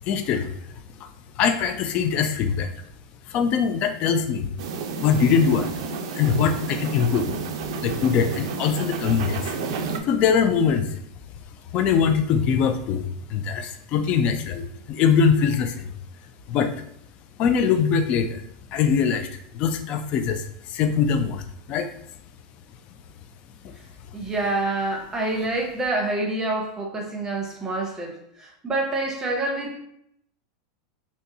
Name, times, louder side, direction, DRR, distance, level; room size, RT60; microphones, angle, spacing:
voice 1, 0.0-0.5 1.0-1.1 1.4-2.7 3.3-4.5 5.0-5.7 6.2-7.4 7.8-9.5 10.1-10.9 11.7-15.9 16.5-16.7 17.4-18.4 18.7-19.3 19.5-21.4 21.7-21.9, left 6 dB, 35° left, 0.4 m, -22 dB
sound 1, 4.6-10.0, right 5 dB, 70° right, 0.5 m, -31 dB
voice 2, 24.1-29.8, right 2 dB, 15° right, 0.7 m, -27 dB
3.9 x 2.2 x 2.7 m
supercardioid pair, 145°, 3 cm